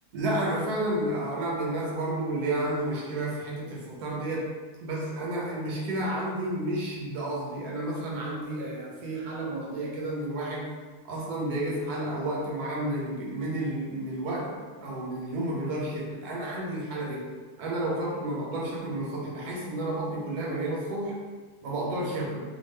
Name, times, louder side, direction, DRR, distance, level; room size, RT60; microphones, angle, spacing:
voice 1, 0.1-4.5 4.8-10.7 11.1-17.3 17.6-21.2 21.6-22.4, right 1 dB, 90° right, -3 dB, 1.2 m, -31 dB
2.9 x 2.0 x 3.2 m, 1.4 s
omnidirectional pair, 1.6 m